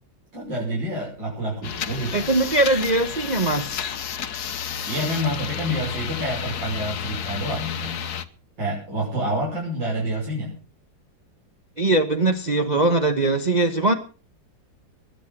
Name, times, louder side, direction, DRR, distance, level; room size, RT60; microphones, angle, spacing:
voice 1, 0.3-2.3 4.8-8.0 8.6-10.5, equal, 65° right, -5 dB, 6.7 m, -28 dB
sound 1, 1.6-8.2, left 8 dB, 60° left, 1.5 m, -31 dB
voice 2, 2.1-3.8 11.8-13.9, right 2 dB, 25° right, 5 dB, 1.0 m, -21 dB
21.0 x 9.5 x 6.1 m, 0.37 s
omnidirectional pair, 2.1 m